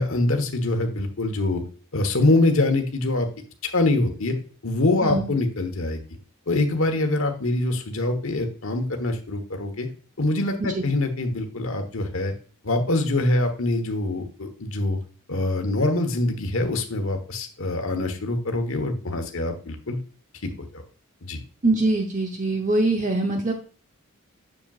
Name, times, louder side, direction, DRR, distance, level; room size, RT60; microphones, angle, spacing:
voice 1, 0.0-1.6 1.9-3.3 3.6-4.3 4.6-6.0 6.5-9.9 10.2-12.3 12.6-15.0 15.3-20.0 20.6-20.8 21.2-21.4, left 2 dB, 65° left, 5 dB, 1.3 m, -24 dB
voice 2, 21.6-23.5, right 2 dB, 35° right, 3 dB, 0.8 m, -23 dB
7.6 x 6.9 x 2.4 m, 0.39 s
head